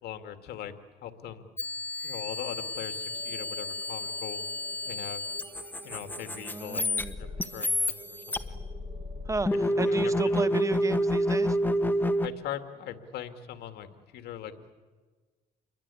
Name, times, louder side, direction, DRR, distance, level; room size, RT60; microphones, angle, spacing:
voice 1, 0.0-0.7 1.0-1.5 2.0-4.5 4.9-5.2 5.8-6.9 7.2-8.6 9.8-10.1 10.4-10.5 12.2-14.7, left 10 dB, 70° left, 8 dB, 2.2 m, -40 dB
sound 1, 1.6-12.3, left 1 dB, 10° left, 1.3 m, -29 dB
sound 2, 3.1-9.6, right 6 dB, 45° right, 6.4 m, -51 dB
voice 2, 6.4-7.1 9.3-11.6, right 3 dB, 20° right, 13 dB, 1.1 m, -33 dB
28.5 x 22.5 x 8.5 m, 1.4 s
cardioid pair, 110°, 17 cm